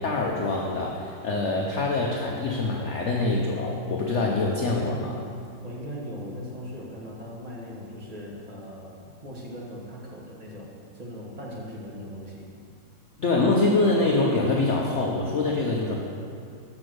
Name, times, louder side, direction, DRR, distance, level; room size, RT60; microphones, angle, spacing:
voice 1, 0.0-5.2 13.2-16.0, left 2 dB, 65° left, -1 dB, 0.7 m, -25 dB
voice 2, 5.6-10.7 10.9-12.4, equal, 25° right, -5 dB, 1.3 m, -39 dB
6.2 x 6.0 x 6.3 m, 2.4 s
omnidirectional pair, 1.9 m